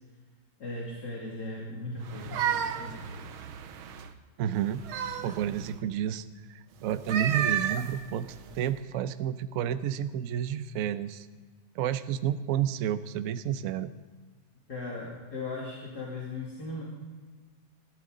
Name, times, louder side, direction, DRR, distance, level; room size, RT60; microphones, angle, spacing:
voice 1, 0.6-3.3 14.7-16.8, left 2 dB, 50° left, -5 dB, 3.2 m, -38 dB
sound 1, 2.0-4.1 4.6-5.8 6.9-8.7, right 8 dB, 90° right, 1.7 m, -33 dB
voice 2, 4.4-4.8 5.2-11.3 11.7-13.9, right 10 dB, 70° right, 12 dB, 0.8 m, -30 dB
21.0 x 14.0 x 3.9 m, 1.4 s
omnidirectional pair, 2.2 m